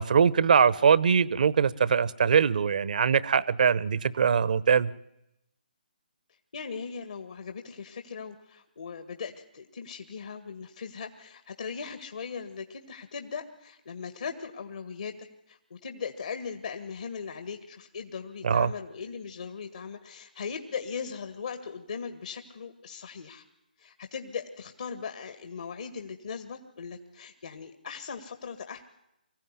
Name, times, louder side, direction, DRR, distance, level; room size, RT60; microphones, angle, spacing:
voice 1, 0.0-4.9 18.4-18.7, right 6 dB, 55° right, 19 dB, 1.0 m, -22 dB
voice 2, 6.5-23.4 23.8-28.8, left 6 dB, 60° left, 7 dB, 2.0 m, -39 dB
24.5 x 16.0 x 9.8 m, 0.84 s
figure-of-eight pair, 145°, 5 cm